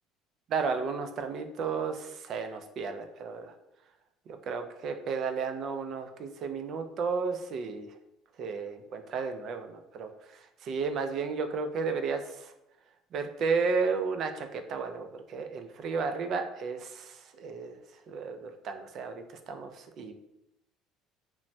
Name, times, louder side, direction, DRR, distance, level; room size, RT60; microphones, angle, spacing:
voice 1, 0.5-3.5 4.4-7.9 8.4-12.5 13.1-17.8 18.1-20.1, right 5 dB, 50° right, 7 dB, 0.3 m, -33 dB
3.0 x 2.1 x 2.6 m, 0.88 s
cardioid pair, 125°, 0 cm